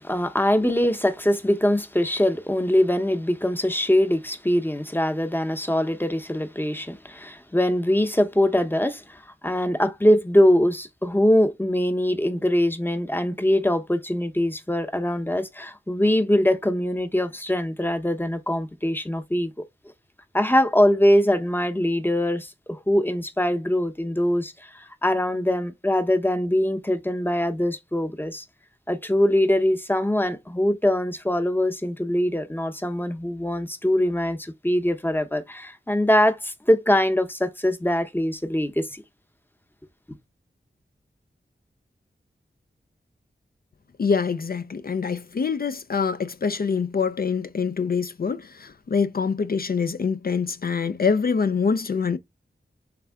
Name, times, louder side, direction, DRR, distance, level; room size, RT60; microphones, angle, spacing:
voice 1, 0.0-19.5 20.3-28.4 28.9-39.0, left 1 dB, 10° left, 0.8 m, -22 dB
voice 2, 44.0-52.2, left 5 dB, 50° left, 0.4 m, -25 dB
3.5 x 3.3 x 3.4 m
wide cardioid pair, 45°, 20 cm